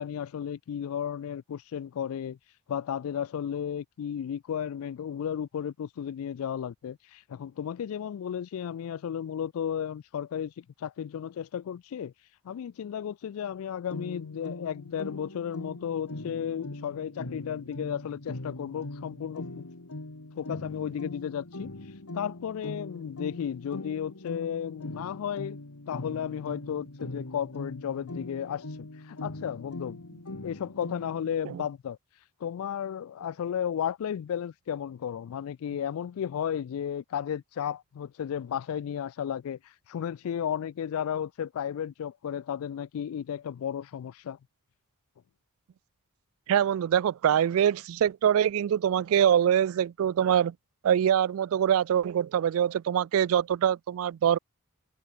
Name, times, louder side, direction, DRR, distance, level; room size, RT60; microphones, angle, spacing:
voice 1, 0.0-2.4 2.7-12.1 12.4-19.7 20.4-21.7 22.1-25.6 25.9-30.0 30.4-32.0 32.4-39.6 39.9-44.4, left 8 dB, 65° left, 0.3 m, -34 dB
sound 1, 13.9-31.3, left 2 dB, 85° left, 1.9 m, -41 dB
voice 2, 46.5-50.5 50.8-54.4, right 9 dB, 65° right, 0.3 m, -24 dB
head